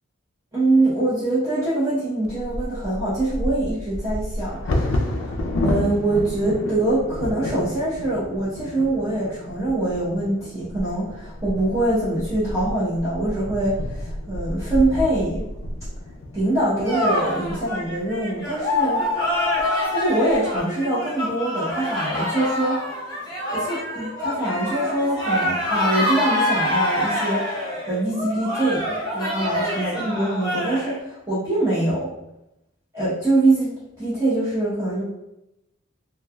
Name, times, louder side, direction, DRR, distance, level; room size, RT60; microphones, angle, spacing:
voice 1, 0.5-5.3 5.6-15.5 16.3-19.0 19.6-22.9 23.5-27.5 27.9-32.1 32.9-35.0, right 2 dB, 15° right, -11 dB, 0.7 m, -24 dB
Bird vocalization bird call bird song / Wind / Thunder, 2.2-18.1 18.8-18.9 19.2-19.6 20.1-20.6, left 1 dB, 80° left, 0.4 m, -30 dB
sound 1, 16.8-31.0, left 1 dB, 20° left, 0.8 m, -26 dB
3.1 x 2.3 x 2.2 m, 0.90 s
head